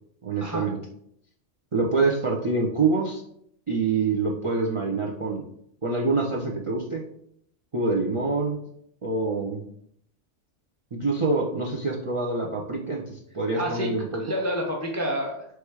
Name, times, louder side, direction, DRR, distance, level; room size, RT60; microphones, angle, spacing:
voice 1, 0.2-0.8 1.7-3.2 3.7-5.4 5.8-7.0 7.7-8.6 9.0-9.6 10.9-14.2, right 3 dB, 45° right, -1 dB, 0.4 m, -26 dB
voice 2, 13.6-15.5, equal, 25° left, 0 dB, 0.4 m, -29 dB
3.2 x 3.2 x 4.6 m, 0.70 s
omnidirectional pair, 1.3 m